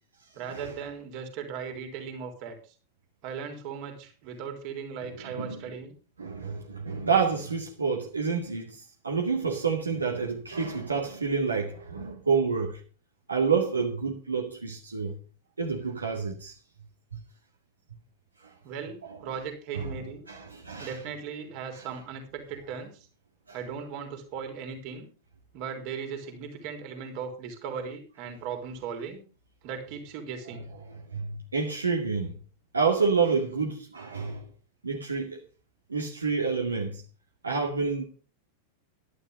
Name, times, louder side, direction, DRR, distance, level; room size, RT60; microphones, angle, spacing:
voice 1, 0.3-2.6 3.2-6.0 18.6-20.2 20.8-23.1 23.5-25.1 25.5-29.2 29.6-30.7, right 6 dB, 45° right, 3.6 m, -38 dB
voice 2, 5.3-5.6 6.2-12.8 13.3-15.2 15.6-16.5 18.4-18.5 19.7-19.9 20.3-21.0 31.1-32.3 32.7-34.5 34.8-35.4 35.9-37.0 37.4-38.0, right 5 dB, 75° right, 2.2 m, -28 dB
12.0 x 11.0 x 5.2 m
figure-of-eight pair, 90°, 0 cm